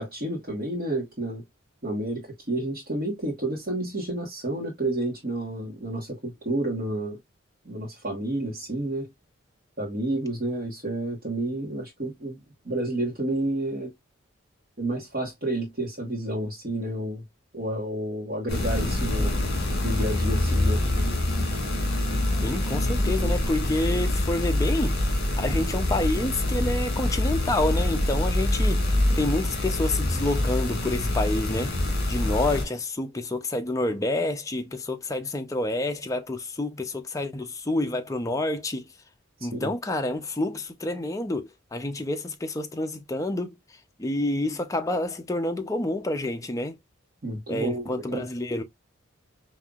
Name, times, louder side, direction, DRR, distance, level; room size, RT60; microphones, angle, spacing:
voice 1, 0.0-1.4 1.8-7.2 7.6-9.1 9.8-12.4 12.6-13.9 14.8-17.2 17.5-19.3 19.8-20.8 39.5-39.7 47.2-48.2, right 1 dB, 45° right, 1.4 m, -30 dB
sound 1, 18.5-32.6, left 1 dB, 55° left, 1.9 m, -25 dB
voice 2, 22.4-38.8 39.4-43.6 44.0-46.8 47.5-48.6, left 1 dB, 15° left, 0.5 m, -28 dB
5.3 x 2.7 x 2.4 m
head